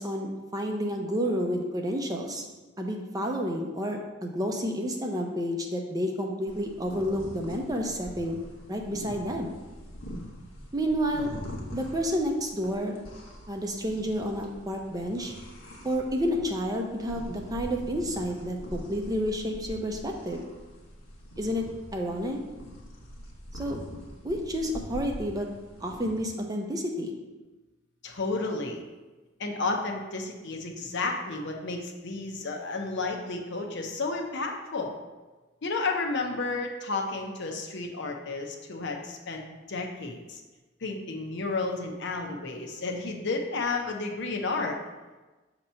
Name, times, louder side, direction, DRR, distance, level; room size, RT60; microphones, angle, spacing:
voice 1, 0.0-2.4 2.8-8.4 8.7-9.5 10.7-11.3 11.7-13.0 13.5-15.3 15.8-20.4 21.4-21.6 21.9-22.4 23.5-23.8 24.2-25.5 25.8-27.2, equal, 20° right, 2 dB, 0.6 m, -30 dB
sound 1, 6.5-26.2, equal, 90° left, 1.1 m, -43 dB
voice 2, 28.0-28.8 29.4-34.9 35.6-39.4 39.7-40.4 40.8-44.8, left 3 dB, 60° left, 2 dB, 0.7 m, -32 dB
6.3 x 2.9 x 5.6 m, 1.2 s
head